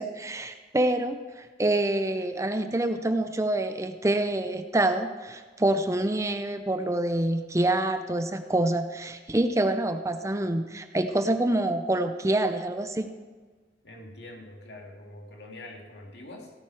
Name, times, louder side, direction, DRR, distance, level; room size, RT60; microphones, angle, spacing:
voice 1, 0.0-13.1, right 1 dB, 15° right, 8 dB, 0.5 m, -26 dB
voice 2, 13.8-16.5, left 1 dB, 70° left, 1 dB, 2.2 m, -44 dB
16.5 x 9.0 x 4.7 m, 1.4 s
head